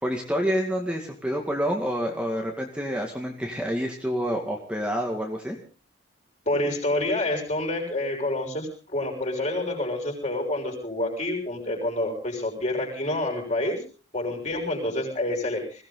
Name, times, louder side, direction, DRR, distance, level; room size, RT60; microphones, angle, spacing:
voice 1, 0.0-5.6, equal, 5° right, 1 dB, 2.1 m, -28 dB
voice 2, 6.5-13.8 14.1-15.8, left 1 dB, 35° left, 2 dB, 6.3 m, -28 dB
21.0 x 17.5 x 3.9 m, 0.38 s
head